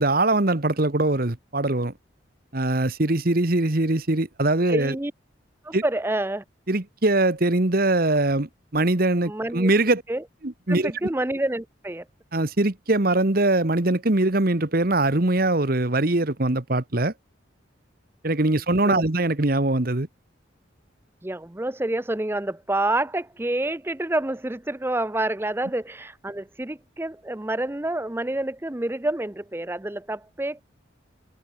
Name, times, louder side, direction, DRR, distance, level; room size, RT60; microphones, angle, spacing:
voice 1, 0.0-1.9 2.5-4.9 5.7-5.8 6.7-10.0 10.4-10.9 12.3-17.1 18.2-20.1, right 2 dB, 50° right, 1.4 m, -22 dB
voice 2, 4.7-5.1 5.6-6.4 9.3-9.7 10.1-10.2 10.7-12.1 18.8-19.0 21.2-30.6, right 1 dB, 10° right, 0.5 m, -28 dB
head